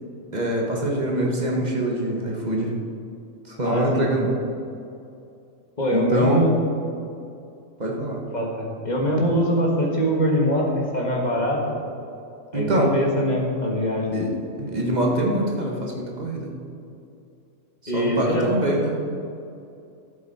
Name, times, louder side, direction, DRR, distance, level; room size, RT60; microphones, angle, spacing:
voice 1, 0.3-2.7 3.4-4.3 5.9-6.4 7.8-8.2 12.5-12.9 14.1-14.3 14.6-16.5 17.8-19.0, right 1 dB, 30° right, -1 dB, 1.4 m, -24 dB
voice 2, 3.6-4.1 5.8-6.5 8.3-11.6 12.5-14.1 17.9-18.5, equal, 30° left, -2 dB, 1.8 m, -23 dB
12.5 x 7.6 x 4.3 m, 2.6 s
omnidirectional pair, 1.4 m